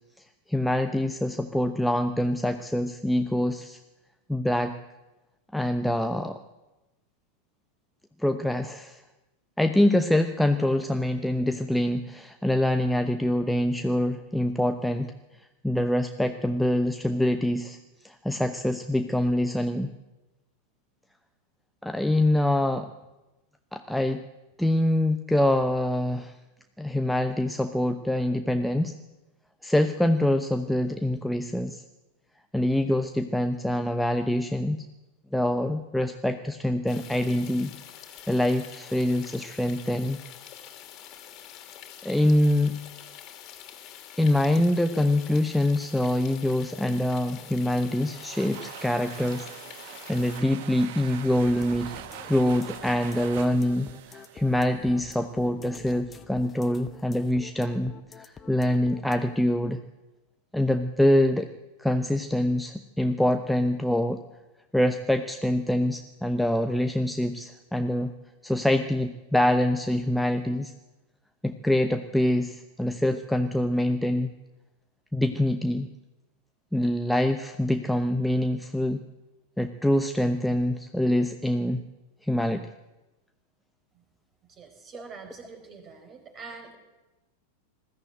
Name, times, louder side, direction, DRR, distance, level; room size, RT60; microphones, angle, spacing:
voice 1, 0.5-3.8 4.3-4.7 5.5-6.4 8.2-9.0 9.6-15.1 15.6-17.8 18.0-19.9 21.8-22.9 23.7-24.2 24.6-26.3 26.8-28.9 29.6-31.8 32.5-34.8 35.3-37.7 38.3-40.2 42.0-42.8 44.2-49.5 49.8-51.9 52.2-59.8 60.5-61.5 61.8-64.2 64.7-68.1 68.4-70.7 71.4-74.3 75.1-75.9 76.7-79.0 79.6-81.8 82.2-82.7, left 1 dB, ahead, 7 dB, 0.9 m, -25 dB
sound 1, 36.9-50.4, left 10 dB, 35° left, 2.8 m, -46 dB
sound 2, 47.8-55.2, right 10 dB, 50° right, 1.4 m, -43 dB
sound 3, 51.4-59.4, left 6 dB, 20° left, 1.2 m, -47 dB
voice 2, 84.5-86.8, right 4 dB, 30° right, 6 dB, 4.6 m, -44 dB
20.5 x 14.5 x 9.0 m, 1.1 s
figure-of-eight pair, 90°, 0 cm